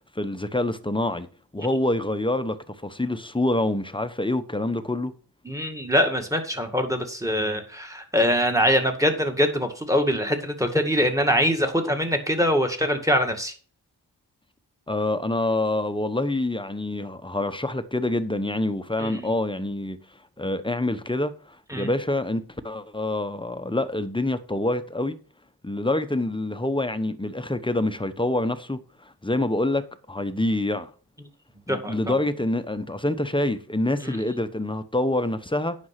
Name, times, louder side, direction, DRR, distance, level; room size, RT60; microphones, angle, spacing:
voice 1, 0.1-1.3 1.5-5.1 14.9-20.0 20.4-25.2 25.6-30.9 31.7-35.8, left 1 dB, 10° left, 0.9 m, -26 dB
voice 2, 5.5-13.5 19.0-19.3 21.7-21.9 31.7-32.0 34.0-34.4, equal, 5° right, 1.9 m, -23 dB
9.4 x 6.2 x 5.8 m
wide cardioid pair, 80°, 43 cm